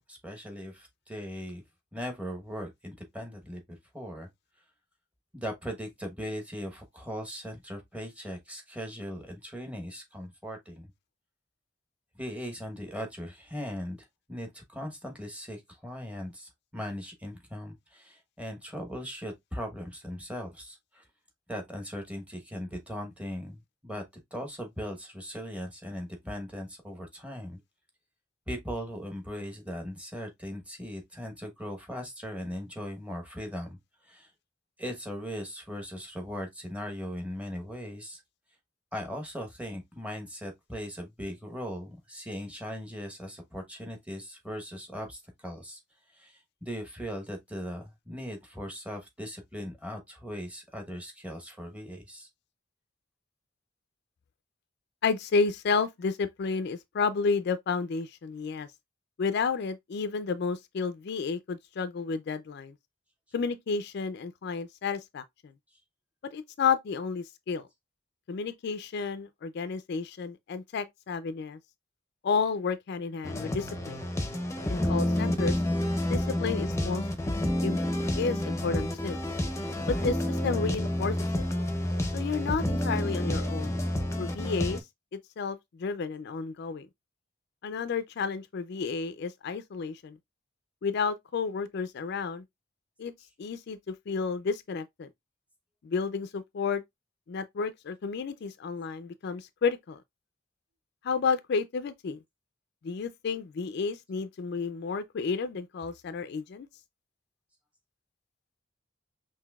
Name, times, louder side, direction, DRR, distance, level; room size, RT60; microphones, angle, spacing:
voice 1, 0.0-1.6 1.9-3.6 3.9-4.3 5.3-10.9 12.1-21.0 21.5-24.0 24.3-27.6 28.5-33.8 34.0-34.3 34.8-38.2 38.9-45.8 46.1-52.3, equal, 5° right, 1.0 m, -39 dB
voice 2, 55.0-58.7 59.2-62.7 63.3-65.2 66.3-67.7 68.3-71.6 72.2-74.0 74.7-75.6 76.1-77.0 77.6-77.8 78.2-79.2 79.9-81.4 82.1-83.7 84.2-84.8 85.1-86.9 87.6-90.2 90.8-92.4 93.0-93.1 93.4-95.1 95.8-96.8 97.3-100.0 101.0-102.2 102.8-106.7, left 5 dB, 60° left, 0.4 m, -31 dB
sound 1, 73.2-84.8, left 1 dB, 15° left, 0.6 m, -29 dB
5.7 x 2.7 x 2.3 m
head